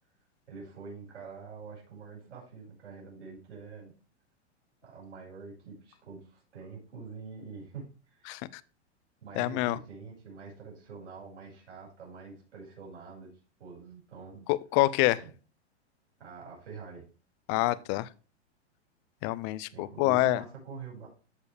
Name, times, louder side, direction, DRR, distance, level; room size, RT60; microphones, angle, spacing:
voice 1, 0.5-3.9 4.8-8.4 9.2-13.3 13.6-14.5 15.1-15.3 16.2-17.0 17.5-17.8 19.7-21.1, right 5 dB, 85° right, 5.5 m, -46 dB
voice 2, 8.3-8.6 9.4-9.8 14.5-15.2 17.5-18.1 19.2-20.4, left 18 dB, 35° left, 0.5 m, -27 dB
13.5 x 4.8 x 3.4 m
hypercardioid pair, 120°, 34 cm